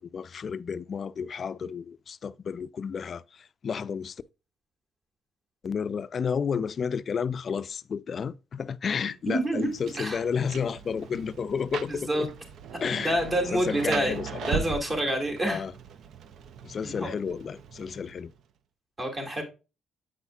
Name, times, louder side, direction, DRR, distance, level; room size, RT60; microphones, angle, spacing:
voice 1, 0.0-4.1 5.6-12.3 12.8-13.2 13.5-14.6 15.4-15.7 16.6-18.3, left 6 dB, 50° left, 0.3 m, -31 dB
voice 2, 9.3-9.7 10.0-10.2 11.8-12.3 13.0-14.2 14.4-15.6 16.8-17.1 19.0-19.4, right 1 dB, 30° right, 2.2 m, -27 dB
Rain, 9.3-18.4, right 7 dB, 70° right, 0.5 m, -39 dB
7.8 x 5.5 x 2.4 m
cardioid pair, 90°, 0 cm